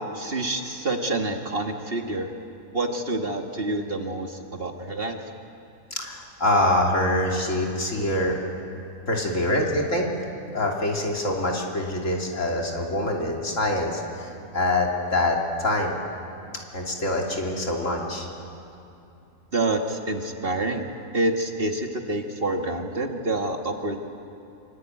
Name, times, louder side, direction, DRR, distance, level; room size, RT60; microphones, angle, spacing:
voice 1, 0.1-2.3 2.7-5.2 19.5-20.9 21.1-24.0, right 2 dB, 40° right, 3 dB, 1.8 m, -27 dB
voice 2, 5.9-8.4 9.1-10.1 10.5-15.9 16.7-18.3, left 1 dB, 60° left, -1 dB, 3.4 m, -25 dB
25.5 x 24.0 x 9.1 m, 2.7 s
omnidirectional pair, 1.5 m